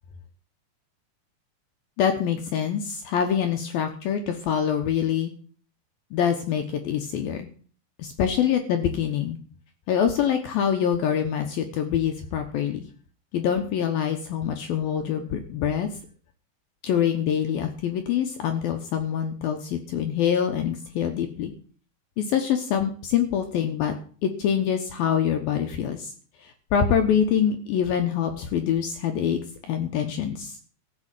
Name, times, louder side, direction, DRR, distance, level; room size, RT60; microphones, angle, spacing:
voice 1, 2.0-5.3 6.1-7.5 8.0-9.4 9.9-12.9 13.3-15.9 16.8-21.5 22.2-23.9 24.2-26.1 26.4-29.4 29.7-30.6, left 8 dB, 70° left, 6 dB, 2.5 m, -25 dB
15.0 x 5.6 x 9.0 m, 0.43 s
omnidirectional pair, 5.3 m